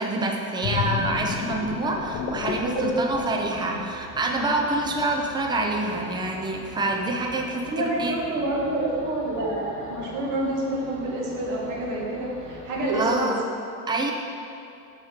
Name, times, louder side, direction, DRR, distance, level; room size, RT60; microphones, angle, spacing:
voice 1, 0.0-8.1 12.9-13.4 13.9-14.1, right 2 dB, 10° right, 1 dB, 0.6 m, -26 dB
sound 1, 0.6-4.2 4.6-4.9, left 8 dB, 75° left, 0.8 m, -31 dB
sound 2, 1.7-13.1, right 2 dB, 35° right, 1.4 m, -43 dB
voice 2, 2.6-3.1 7.7-13.3, right 1 dB, 50° right, -4 dB, 1.8 m, -27 dB
10.5 x 4.4 x 5.0 m, 2.7 s
cardioid pair, 150°, 40 cm